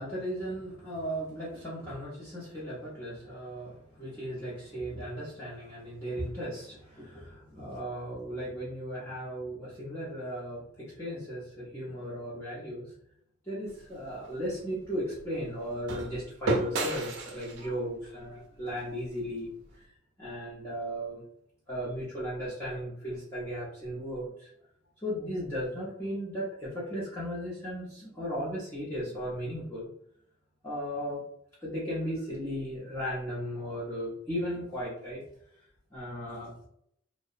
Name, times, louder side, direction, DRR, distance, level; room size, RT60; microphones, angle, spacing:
voice 1, 0.0-12.9 13.4-19.5 19.7-21.2 21.7-24.5 25.0-29.9 30.6-31.2 31.6-35.2 35.9-36.7, equal, 15° left, -10 dB, 0.7 m, -36 dB
sound 1, 13.7-19.8, right 2 dB, 70° right, 0.5 m, -36 dB
2.8 x 2.1 x 2.4 m, 0.71 s
head